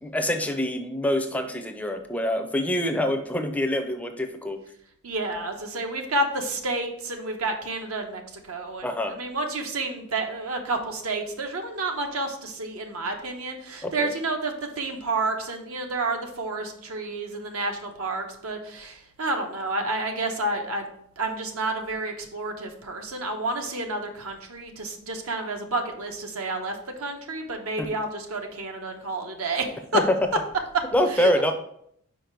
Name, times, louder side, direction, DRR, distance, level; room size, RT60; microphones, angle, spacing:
voice 1, 0.0-4.6 8.8-9.2 13.8-14.1 27.8-27.9 29.9-30.2 30.9-31.5, left 1 dB, 5° left, 5 dB, 0.4 m, -25 dB
voice 2, 5.0-20.8 21.2-30.0 30.7-30.8 31.1-31.3, right 2 dB, 80° right, 4 dB, 1.0 m, -30 dB
5.1 x 4.9 x 4.5 m, 0.71 s
head